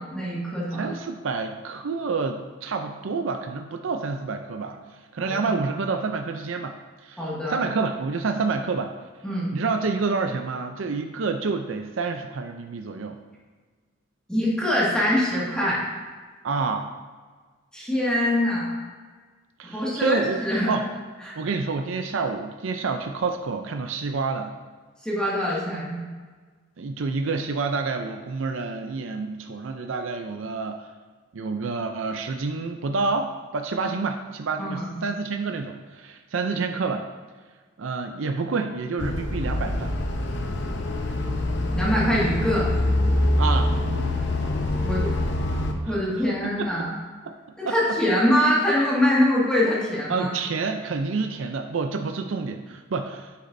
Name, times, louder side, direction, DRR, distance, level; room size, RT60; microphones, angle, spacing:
voice 1, 0.0-0.9 5.2-5.5 7.2-7.6 9.2-9.5 14.3-15.8 17.7-18.8 19.6-20.8 21.2-21.3 25.0-26.0 34.6-34.9 41.7-42.7 44.8-45.1 45.8-46.9 47.6-50.3, left 1 dB, 5° left, -7 dB, 1.9 m, -24 dB
voice 2, 0.7-4.8 5.1-8.9 9.5-13.2 16.4-16.9 19.6-20.4 20.7-20.9 21.4-24.5 26.8-30.9 31.3-37.1 37.8-40.0 43.4-43.7 45.8-46.7 47.3-47.4 47.7-47.8 50.1-53.3, right 4 dB, 80° right, 6 dB, 0.5 m, -28 dB
sound 1, 39.0-45.7, left 1 dB, 60° left, 0.8 m, -25 dB
10.0 x 8.3 x 2.6 m, 1.5 s
head